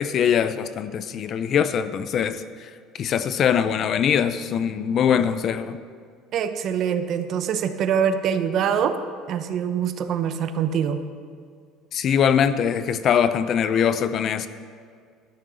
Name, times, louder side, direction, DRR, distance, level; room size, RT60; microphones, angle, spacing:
voice 1, 0.0-2.7 3.0-5.8 11.9-14.5, left 8 dB, 45° left, 13 dB, 0.6 m, -22 dB
voice 2, 6.3-9.0 9.3-11.0, right 8 dB, 50° right, 9 dB, 0.8 m, -24 dB
12.5 x 6.6 x 7.7 m, 2.1 s
cardioid pair, 120°, 0 cm